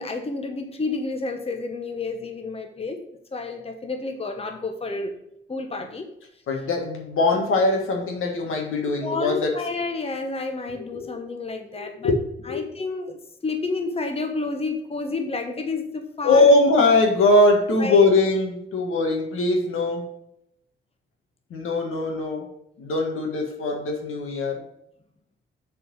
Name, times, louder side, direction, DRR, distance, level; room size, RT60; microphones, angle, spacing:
voice 1, 0.0-3.0 3.3-5.2 5.5-6.1 9.0-12.1 12.5-16.5 17.8-18.0, left 3 dB, 30° left, 5 dB, 1.0 m, -30 dB
voice 2, 6.5-9.7 10.7-11.2 11.7-12.7 16.2-20.2 21.5-22.5 22.8-24.6, left 2 dB, 80° left, 1 dB, 1.8 m, -21 dB
6.6 x 4.6 x 6.3 m, 0.77 s
cardioid pair, 70°, 21 cm